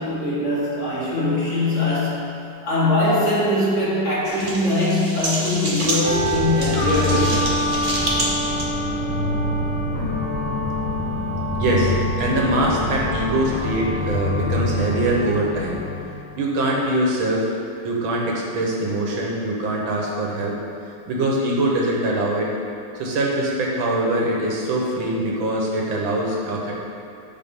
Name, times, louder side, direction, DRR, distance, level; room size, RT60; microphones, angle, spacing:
voice 1, 0.0-7.4, left 1 dB, 35° left, -8 dB, 2.4 m, -22 dB
sound 1, 4.2-8.7, right 1 dB, 35° right, 0.9 m, -28 dB
sound 2, 6.0-17.0, left 1 dB, 80° left, 1.9 m, -27 dB
sound 3, 6.1-16.0, left 1 dB, 10° right, 0.5 m, -28 dB
voice 2, 11.6-15.8 16.4-17.5 17.8-20.6 21.1-22.5 23.0-26.7, right 1 dB, 75° right, -2 dB, 2.0 m, -23 dB
13.0 x 4.9 x 3.7 m, 2.5 s
omnidirectional pair, 2.2 m